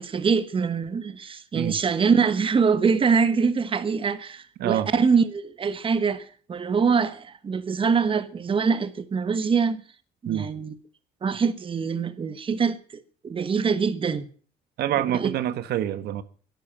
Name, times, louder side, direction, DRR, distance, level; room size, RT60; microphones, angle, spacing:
voice 1, 0.0-9.8 10.2-10.7 11.2-12.8 13.2-14.3 15.0-15.3, right 5 dB, 30° right, 1.3 m, -24 dB
voice 2, 14.8-16.2, right 11 dB, 70° right, 1.3 m, -26 dB
12.0 x 11.5 x 8.6 m
cardioid pair, 110°, 17 cm